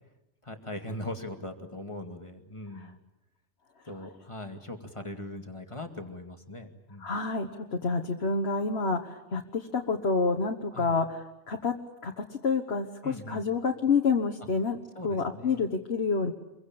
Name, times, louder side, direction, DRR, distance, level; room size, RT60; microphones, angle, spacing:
voice 1, 0.4-3.0 3.8-7.1 10.7-11.0 13.0-13.5 15.0-15.6, left 1 dB, 25° left, 5 dB, 2.3 m, -40 dB
voice 2, 7.0-11.7 12.0-14.8 15.0-16.3, left 4 dB, 65° left, 4 dB, 1.7 m, -28 dB
26.5 x 23.0 x 8.8 m, 0.91 s
omnidirectional pair, 1.2 m